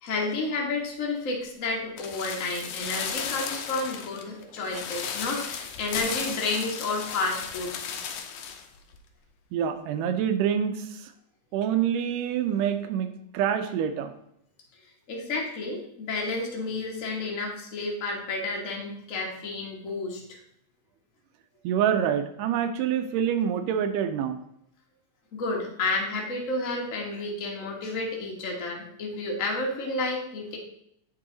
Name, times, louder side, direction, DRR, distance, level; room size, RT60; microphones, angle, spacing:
voice 1, 0.0-7.7 15.1-20.4 25.3-30.6, left 3 dB, 70° left, -1 dB, 0.7 m, -31 dB
sound 1, 2.0-8.7 8.9-9.0, left 7 dB, 85° left, 1.4 m, -35 dB
voice 2, 9.5-10.7 11.5-13.1 13.3-14.1 21.6-24.4, right 9 dB, 85° right, 8 dB, 2.2 m, -26 dB
8.5 x 4.8 x 3.8 m, 0.73 s
omnidirectional pair, 3.8 m